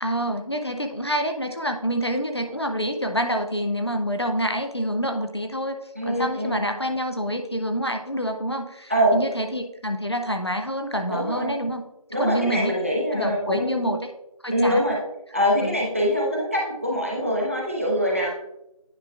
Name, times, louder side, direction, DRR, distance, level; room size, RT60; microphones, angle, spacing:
voice 1, 0.0-11.8 12.2-12.7 13.1-14.1 14.4-14.9 15.6-15.8, equal, 45° left, 4 dB, 0.6 m, -27 dB
voice 2, 6.0-6.7 8.9-9.2 11.1-11.5 12.1-14.0 14.5-15.0 15.3-18.3, equal, 20° right, -2 dB, 0.9 m, -24 dB
9.7 x 5.3 x 2.3 m, 0.87 s
figure-of-eight pair, 175°, 19 cm